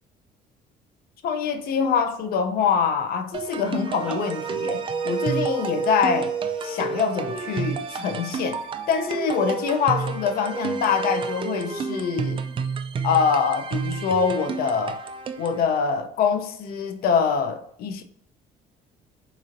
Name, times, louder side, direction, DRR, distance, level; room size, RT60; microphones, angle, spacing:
voice 1, 1.2-6.3 6.6-12.4 13.0-15.0 15.4-18.0, left 6 dB, 65° left, 0.5 m, -24 dB
sound 1, 3.3-15.6, right 5 dB, 30° right, 0.3 m, -32 dB
sound 2, 4.0-7.7 9.1-12.7, right 4 dB, 5° right, 0.7 m, -31 dB
3.9 x 2.9 x 2.5 m
cardioid pair, 110°, 17 cm